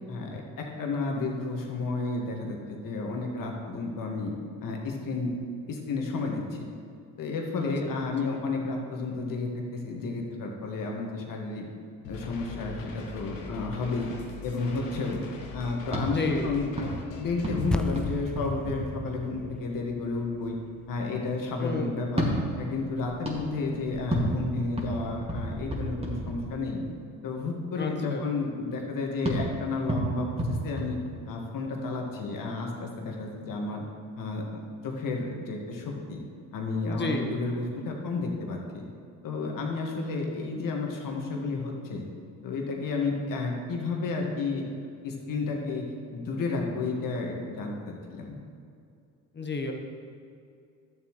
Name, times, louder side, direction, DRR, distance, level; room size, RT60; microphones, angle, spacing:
voice 1, 0.1-4.3 4.6-5.3 5.7-6.7 7.2-11.7 12.1-14.1 14.4-15.2 15.5-20.6 20.9-22.3 22.6-26.8 27.2-31.0 31.3-33.8 34.2-36.2 36.5-38.8 39.2-42.0 42.4-44.6 45.0-45.9 46.1-48.4, left 3 dB, 60° left, 1 dB, 1.8 m, -31 dB
sound 1, 12.0-18.1, left 3 dB, 90° left, 1.1 m, -42 dB
sound 2, 15.8-19.7 22.0-26.9 29.2-31.7, right 1 dB, 15° right, 2.2 m, -33 dB
voice 2, 16.1-16.5 21.6-22.0 27.8-28.2 36.9-37.3 49.3-49.7, left 3 dB, 30° left, 3 dB, 1.4 m, -31 dB
sound 3, 17.7-22.2, left 1 dB, ahead, 0.3 m, -37 dB
12.0 x 7.2 x 3.2 m, 2.4 s
hypercardioid pair, 60°, 37 cm